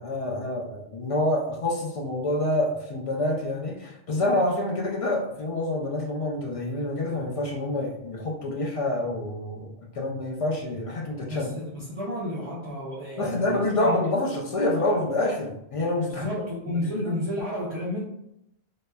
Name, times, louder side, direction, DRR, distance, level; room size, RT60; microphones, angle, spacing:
voice 1, 0.0-11.5 13.2-16.3 16.9-17.1, left 1 dB, 50° left, -2 dB, 0.4 m, -27 dB
voice 2, 11.3-14.0 16.1-18.0, left 1 dB, 45° right, -7 dB, 0.3 m, -32 dB
2.9 x 2.1 x 2.2 m, 0.77 s
omnidirectional pair, 1.1 m